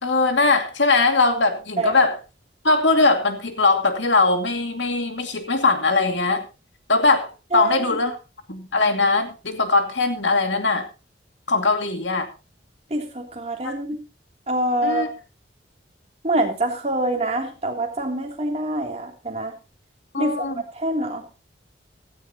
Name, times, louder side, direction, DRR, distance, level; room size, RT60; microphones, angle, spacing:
voice 1, 0.0-2.2 2.6-6.4 6.9-8.2 8.5-10.8 11.5-12.3 13.6-13.7 14.8-15.1 20.1-20.6, left 3 dB, 80° left, 2.4 m, -20 dB
voice 2, 12.9-14.0 14.5-15.1 16.2-19.5 20.2-20.4 20.7-21.3, right 1 dB, 35° right, 3.1 m, -25 dB
16.0 x 14.0 x 3.0 m
head